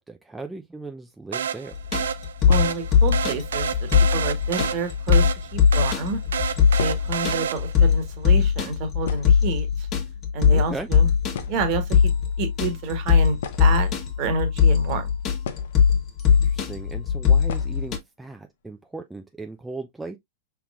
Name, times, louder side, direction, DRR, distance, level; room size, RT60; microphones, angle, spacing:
voice 1, 0.0-1.7 10.5-10.9 16.3-20.2, right 3 dB, 5° right, 0.5 m, -37 dB
sound 1, 1.3-7.9, right 8 dB, 70° right, 0.5 m, -30 dB
sound 2, 1.7-18.0, left 7 dB, 35° left, 1.5 m, -20 dB
sound 3, 2.5-3.1 4.0-4.1 4.5-5.1 5.4-5.5 5.7-5.9 6.3-7.3 7.6-7.7 8.0-8.3 8.6-8.7 9.0-9.9 10.9-11.0 11.3-11.9 13.3-14.4 15.4-16.2 16.5-16.6 17.4-17.9 18.2-18.3 18.7-18.8 19.2-19.6, left 7 dB, 60° left, 0.7 m, -37 dB
voice 2, 2.5-5.3 5.5-6.2 6.8-9.9 10.3-11.1 11.5-12.1 12.4-13.9 14.2-15.1, right 3 dB, 45° right, 1.5 m, -29 dB
5.6 x 3.6 x 2.4 m
figure-of-eight pair, 100°, 0 cm